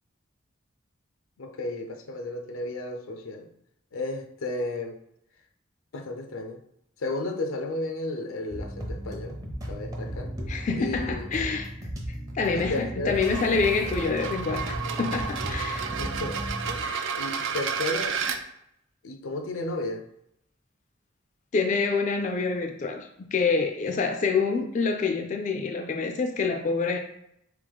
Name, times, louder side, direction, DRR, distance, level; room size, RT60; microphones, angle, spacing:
voice 1, 1.4-3.5 3.9-5.0 5.9-6.6 7.0-10.3 10.8-11.3 12.5-13.2 15.8-16.4 16.6-18.2 19.0-20.0, left 2 dB, 85° left, 5 dB, 0.5 m, -33 dB
sound 1, 8.5-16.8, equal, 15° right, 0.6 m, -35 dB
voice 2, 10.5-15.9 16.8-17.1 21.5-27.0, left 4 dB, 35° left, 4 dB, 0.3 m, -27 dB
sound 2, 13.1-18.4, right 6 dB, 70° right, 0.4 m, -32 dB
3.7 x 2.9 x 3.5 m, 0.76 s
head